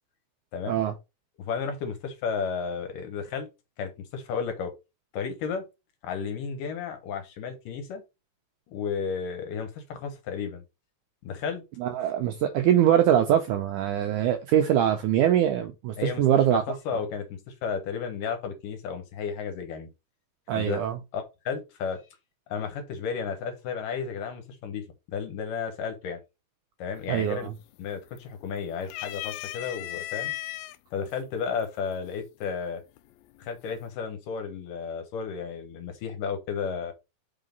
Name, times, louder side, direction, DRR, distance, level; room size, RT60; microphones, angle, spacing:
voice 1, 1.4-3.5 3.8-4.7 5.1-5.6 6.0-8.0 8.7-10.6 11.2-11.6 16.0-16.2 16.5-19.9 20.5-20.8 21.1-22.0 22.5-24.8 25.1-26.2 26.8-27.5 27.8-30.3 30.9-32.8 33.4-36.9, left 6 dB, 70° left, 2.7 m, -33 dB
voice 2, 11.8-16.6 20.5-21.0 27.1-27.5, right 10 dB, 80° right, 1.8 m, -23 dB
sound 1, 27.0-27.4 27.7-28.4 28.8-30.8 31.6-31.7 33.0-33.4, left 17 dB, 85° left, 2.4 m, -36 dB
5.6 x 3.9 x 5.2 m
omnidirectional pair, 4.2 m